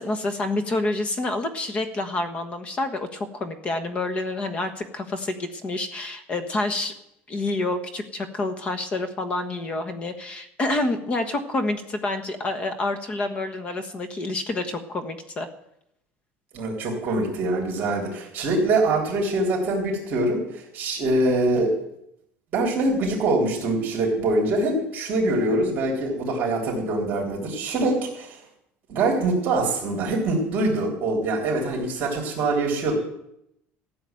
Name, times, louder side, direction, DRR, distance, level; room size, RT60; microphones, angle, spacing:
voice 1, 0.0-6.9 7.3-15.5, left 2 dB, 30° left, 9 dB, 1.3 m, -28 dB
voice 2, 16.5-21.7 22.5-28.4 28.9-32.9, right 2 dB, 40° right, 0 dB, 3.8 m, -24 dB
14.5 x 7.1 x 9.2 m, 0.79 s
cardioid pair, 160°, 5 cm